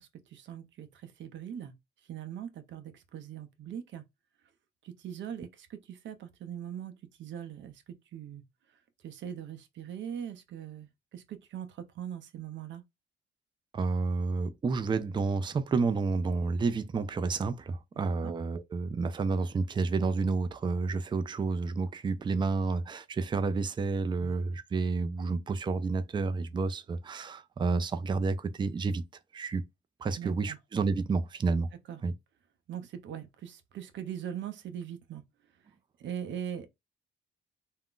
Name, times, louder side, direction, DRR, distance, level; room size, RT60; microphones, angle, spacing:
voice 1, 0.0-1.7 2.0-4.0 4.8-8.4 9.0-12.8 17.9-18.3 24.2-24.3 30.2-30.6 31.9-32.1 32.7-35.2 36.0-36.7, right 9 dB, 70° right, 0.6 m, -41 dB
voice 2, 13.7-29.0 29.3-29.6 30.0-31.7 32.0-32.1, right 4 dB, 25° right, 0.4 m, -30 dB
2.4 x 2.1 x 3.6 m
cardioid pair, 90°, 20 cm